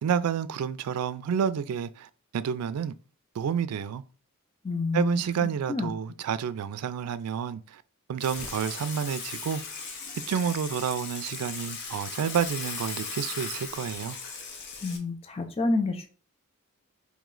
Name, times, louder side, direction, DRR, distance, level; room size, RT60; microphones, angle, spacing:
voice 1, 0.0-2.9 3.4-4.0 4.9-7.8 8.1-9.8 10.3-14.2, right 7 dB, 90° right, 0.3 m, -29 dB
voice 2, 4.6-5.2 5.7-5.9 14.8-16.1, left 3 dB, 25° left, 0.5 m, -28 dB
Water / Water tap faucet / Sink (filling or washing), 8.2-15.0, left 5 dB, 50° left, 0.8 m, -37 dB
3.1 x 3.1 x 3.7 m
head